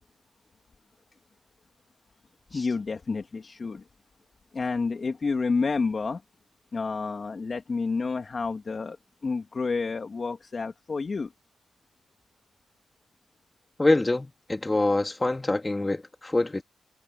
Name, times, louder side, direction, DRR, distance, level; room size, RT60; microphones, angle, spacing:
voice 1, 2.5-3.8 4.5-6.2 6.7-9.0 9.2-11.3, left 4 dB, 45° left, 3.0 m, -29 dB
voice 2, 13.8-16.6, left 2 dB, 25° left, 2.7 m, -25 dB
supercardioid pair, 45°, 0 cm